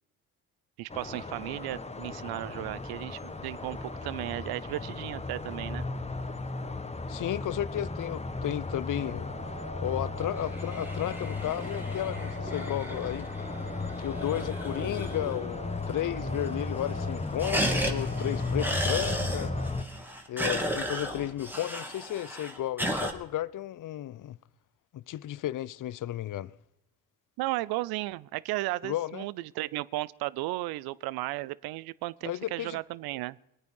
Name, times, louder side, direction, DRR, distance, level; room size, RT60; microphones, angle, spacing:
voice 1, 0.8-5.9 27.4-33.4, right 18 dB, 70° right, 0.6 m, -35 dB
sound 1, 0.9-19.8, left 3 dB, 15° left, 1.2 m, -35 dB
voice 2, 7.1-9.3 9.8-13.3 14.0-19.5 20.3-24.4 24.9-26.5 28.8-29.3 32.2-32.8, left 13 dB, 55° left, 0.7 m, -33 dB
sound 2, 9.0-19.7, right 2 dB, 35° right, 1.6 m, -45 dB
sound 3, 10.2-15.5 15.8-15.9 16.2-16.7 16.9-23.1, equal, 5° right, 2.6 m, -34 dB
21.0 x 9.2 x 5.5 m
hypercardioid pair, 50°, 39 cm